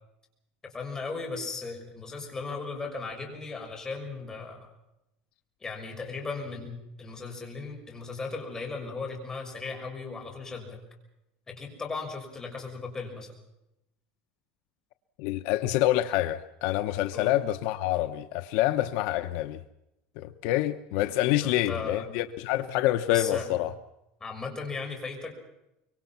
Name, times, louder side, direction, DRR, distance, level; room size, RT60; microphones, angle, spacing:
voice 1, 0.6-4.7 5.6-10.8 11.5-13.3 17.1-17.4 21.4-22.1 23.1-23.5 24.2-25.3, left 4 dB, 15° left, 6.0 m, -37 dB
voice 2, 15.2-19.6 20.2-23.7, left 14 dB, 65° left, 1.0 m, -27 dB
25.0 x 23.5 x 5.8 m
cardioid pair, 155°, 4 cm